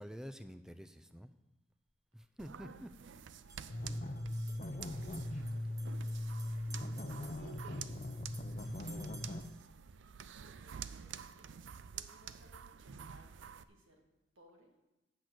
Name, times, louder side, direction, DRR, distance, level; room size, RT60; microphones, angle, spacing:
voice 1, 0.0-1.3 2.1-2.9, equal, 5° right, 10 dB, 0.4 m, -48 dB
sound 1, 1.7-1.8 3.3-9.6, right 3 dB, 20° right, 0.9 m, -58 dB
sound 2, 2.4-13.6, right 8 dB, 65° right, 0.4 m, -50 dB
voice 2, 3.6-8.1 10.4-14.0 14.4-14.7, equal, 90° right, 1 dB, 2.0 m, -66 dB
sound 3, 3.7-9.4, left 1 dB, 35° left, 0.7 m, -40 dB
8.7 x 6.0 x 7.9 m, 1.0 s
head